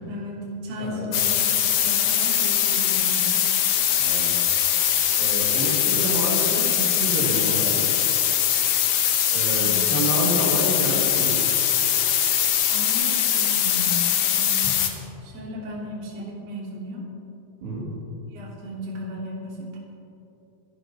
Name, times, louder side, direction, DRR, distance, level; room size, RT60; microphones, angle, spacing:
voice 1, 0.0-3.4 9.5-9.9 12.7-13.9 14.2-14.7 15.2-17.0 18.3-19.8, equal, 40° right, -4 dB, 3.9 m, -35 dB
voice 2, 0.8-1.2 4.0-4.4 5.2-7.8 9.3-11.4 17.6-17.9, right 1 dB, 80° right, -3 dB, 4.8 m, -28 dB
sound 1, 1.1-14.9, left 10 dB, 75° left, 3.1 m, -22 dB
28.5 x 11.0 x 4.4 m, 2.9 s
omnidirectional pair, 4.6 m